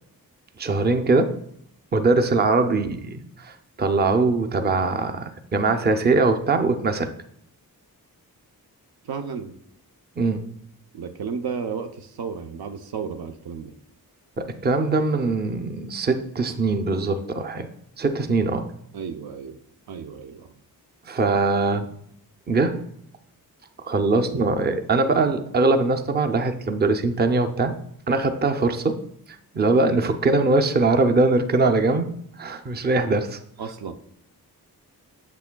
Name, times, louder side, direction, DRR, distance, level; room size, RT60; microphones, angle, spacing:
voice 1, 0.6-1.4 1.9-7.1 10.2-10.5 14.4-17.7 18.0-18.7 21.1-21.9 22.5-22.8 23.8-27.8 28.1-29.0 29.5-33.4, right 3 dB, 30° right, 7 dB, 0.5 m, -22 dB
voice 2, 2.7-3.0 9.0-9.5 10.9-13.7 18.9-19.6 19.9-20.5 24.3-24.6 33.6-33.9, right 6 dB, 85° right, 7 dB, 0.7 m, -33 dB
8.3 x 7.2 x 2.2 m, 0.69 s
wide cardioid pair, 120°, 36 cm